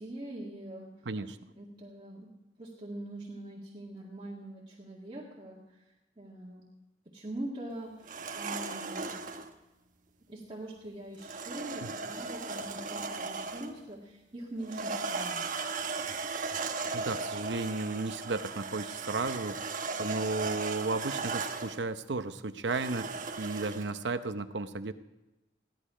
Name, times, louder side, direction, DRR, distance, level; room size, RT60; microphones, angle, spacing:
voice 1, 0.0-1.1 1.5-5.8 6.2-6.6 7.1-9.1 10.3-15.5, right 1 dB, 30° right, -5 dB, 2.0 m, -43 dB
voice 2, 1.1-1.4 11.8-11.9 16.9-19.6 20.0-23.1 23.4-24.9, right 3 dB, 80° right, 10 dB, 0.8 m, -34 dB
sound 1, 8.0-9.5 11.2-13.8 14.6-21.8 22.7-23.9, right 4 dB, 50° right, 1.1 m, -37 dB
sound 2, 15.8-18.8 19.1-20.7, equal, 40° left, 2.5 m, -58 dB
16.0 x 12.0 x 5.0 m, 1.0 s
head